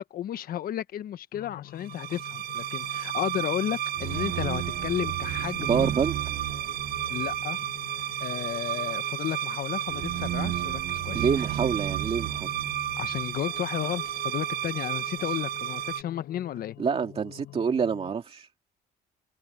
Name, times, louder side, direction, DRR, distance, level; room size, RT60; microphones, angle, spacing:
voice 1, 0.0-5.9 7.1-7.6 8.2-11.2 13.0-16.8, left 11 dB, 60° left, 1.3 m, -33 dB
sound 1, 1.3-18.1, left 15 dB, 80° left, 4.8 m, -47 dB
sound 2, 1.9-16.0, right 12 dB, 65° right, 0.8 m, -31 dB
voice 2, 5.7-6.1 11.1-12.5 16.8-18.5, right 6 dB, 35° right, 2.4 m, -27 dB
open air
cardioid pair, 110°, 17 cm